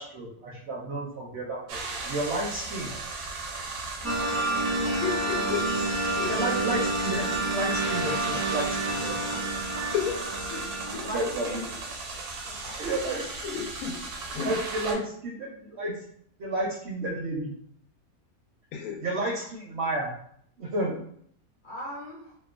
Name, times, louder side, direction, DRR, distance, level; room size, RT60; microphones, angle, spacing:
voice 1, 0.0-2.9 6.2-9.4 11.1-11.6 12.8-13.6 14.4-15.9 16.4-17.5 19.0-20.1 20.6-20.9, right 2 dB, 65° right, -2 dB, 0.6 m, -31 dB
sound 1, 1.7-14.9, right 3 dB, 90° right, 1.1 m, -36 dB
sound 2, 4.0-11.8, right 2 dB, 20° right, 0.4 m, -29 dB
voice 2, 4.9-5.6 6.1-6.3 9.9-10.1 10.5-10.6 13.4-14.0 14.3-14.5 18.7-19.0, left 8 dB, 85° left, 0 dB, 1.1 m, -31 dB
voice 3, 10.9-11.9 12.5-12.9 13.2-13.3 21.6-22.4, equal, 60° left, -6 dB, 0.5 m, -40 dB
2.8 x 2.1 x 2.3 m, 0.64 s
omnidirectional pair, 1.5 m